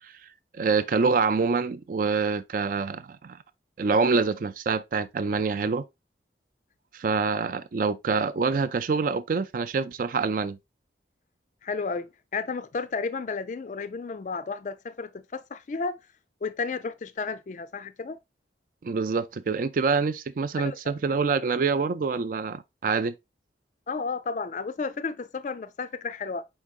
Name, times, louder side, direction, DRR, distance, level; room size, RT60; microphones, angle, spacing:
voice 1, 0.6-3.4 3.8-5.8 6.9-10.6 18.8-23.1, right 4 dB, 50° right, 0.3 m, -26 dB
voice 2, 11.6-16.0 16.4-18.2 20.6-20.8 23.9-26.4, left 4 dB, 45° left, 0.4 m, -32 dB
4.8 x 4.4 x 2.4 m
head